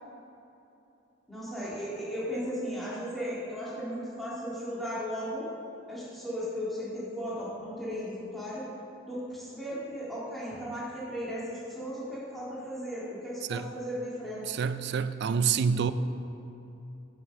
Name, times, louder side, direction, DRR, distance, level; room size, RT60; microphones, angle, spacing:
voice 1, 1.3-5.5 5.9-8.6 9.0-14.4, equal, ahead, -9 dB, 1.9 m, -36 dB
voice 2, 14.5-15.9, right 6 dB, 60° right, 12 dB, 0.4 m, -27 dB
7.1 x 6.0 x 6.8 m, 2.9 s
head